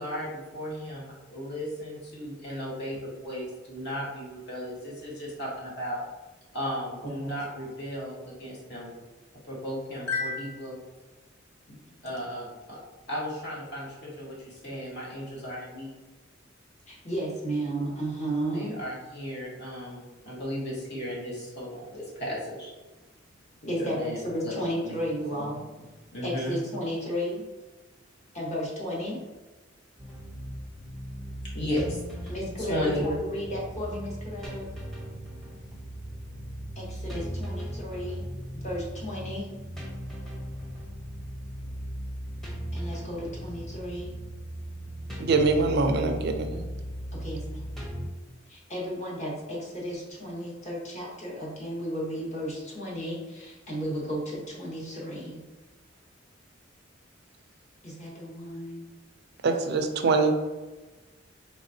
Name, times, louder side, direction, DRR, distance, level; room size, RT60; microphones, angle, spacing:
voice 1, 0.0-6.0 6.5-8.9 9.4-10.8 11.7-11.8 12.0-12.8 13.1-15.9 18.5-22.7 23.6-24.5 24.8-25.0 25.4-25.5 25.8-25.9 26.1-26.6 31.5-32.3 32.6-33.0, left 1 dB, 60° left, -5 dB, 1.3 m, -35 dB
voice 2, 7.0-7.4 16.9-18.7 23.7-25.6 26.2-27.4 28.3-29.2 32.3-34.7 36.7-38.2 38.5-39.5 42.7-44.1 47.1-47.7 48.5-55.4 57.8-58.8, equal, 40° left, -4 dB, 1.2 m, -33 dB
sound 1, 30.0-48.1, equal, ahead, 0.7 m, -38 dB
voice 3, 45.2-46.7 59.4-60.4, right 3 dB, 55° right, 6 dB, 0.4 m, -24 dB
4.1 x 3.3 x 2.7 m, 1.2 s
head